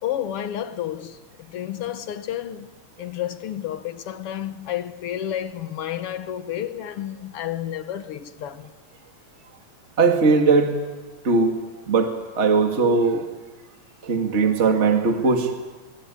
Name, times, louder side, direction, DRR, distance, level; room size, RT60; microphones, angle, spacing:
voice 1, 0.0-1.2 1.5-2.7 3.0-8.7, left 11 dB, 60° left, 1.9 m, -31 dB
voice 2, 10.0-10.7 11.2-11.6 11.9-13.2 14.0-15.5, right 4 dB, 25° right, 2.2 m, -19 dB
26.0 x 23.0 x 9.8 m
omnidirectional pair, 3.4 m